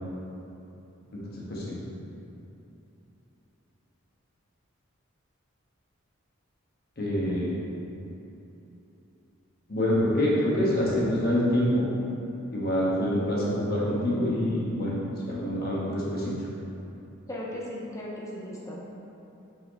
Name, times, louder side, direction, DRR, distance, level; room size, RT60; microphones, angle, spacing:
voice 1, 7.0-7.5 9.7-11.9 12.5-15.0 15.3-16.3, left 1 dB, 45° left, -6 dB, 1.3 m, -26 dB
voice 2, 17.3-18.9, left 1 dB, 15° left, -4 dB, 0.5 m, -37 dB
5.5 x 4.4 x 4.0 m, 2.9 s
head